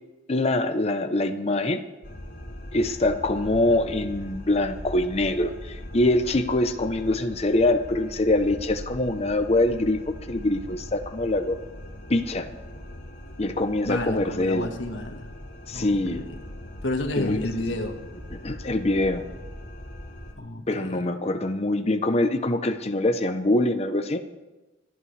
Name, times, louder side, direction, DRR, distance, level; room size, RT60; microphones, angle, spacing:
voice 1, 0.3-1.8 2.7-10.0 10.3-11.6 12.1-12.5 13.4-14.7 15.7-16.3 17.2-17.4 18.4-19.3 20.7-24.2, left 2 dB, 35° left, 7 dB, 0.7 m, -24 dB
sound 1, 2.0-20.3, left 1 dB, 50° left, 3.1 m, -40 dB
voice 2, 13.8-15.3 15.7-16.3 16.8-18.0 20.4-21.0, left 2 dB, 85° left, 4 dB, 1.5 m, -31 dB
28.5 x 11.0 x 3.3 m, 1.1 s
head